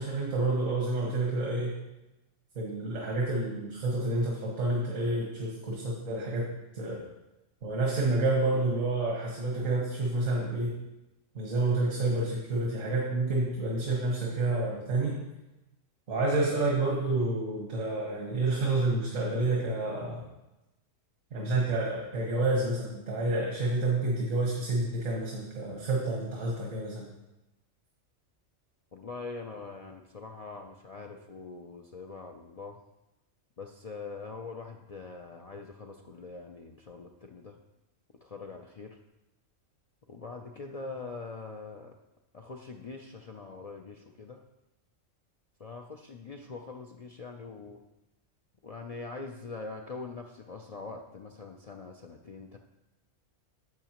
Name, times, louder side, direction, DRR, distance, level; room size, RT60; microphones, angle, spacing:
voice 1, 0.0-1.7 2.5-7.0 7.6-10.7 11.3-15.2 16.1-20.2 21.3-27.1, right 2 dB, 90° right, -3 dB, 1.7 m, -29 dB
voice 2, 28.9-32.8 33.6-37.6 38.2-39.0 40.1-41.9 42.3-44.4 45.6-47.8 48.6-52.6, left 4 dB, 70° left, 2 dB, 0.3 m, -43 dB
10.5 x 7.2 x 3.0 m, 0.97 s
omnidirectional pair, 1.3 m